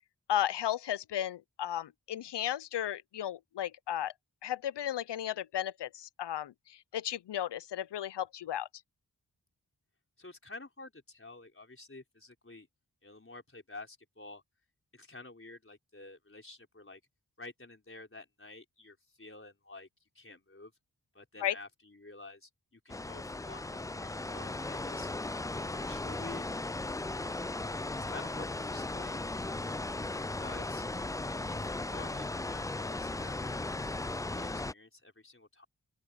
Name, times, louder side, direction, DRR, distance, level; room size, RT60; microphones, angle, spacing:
voice 1, 0.3-4.1 4.4-6.5 6.9-8.7 21.4-21.5, left 11 dB, 90° left, 0.6 m, -34 dB
voice 2, 10.2-12.7 13.0-14.4 14.9-17.0 17.4-19.9 20.1-20.7 21.1-25.1 25.5-26.5 28.1-29.3 30.4-30.8 31.5-34.0 34.3-35.7, left 2 dB, 30° left, 4.6 m, -50 dB
sound 1, 22.9-34.7, left 2 dB, 10° left, 0.3 m, -37 dB
open air
cardioid pair, 40°, 40 cm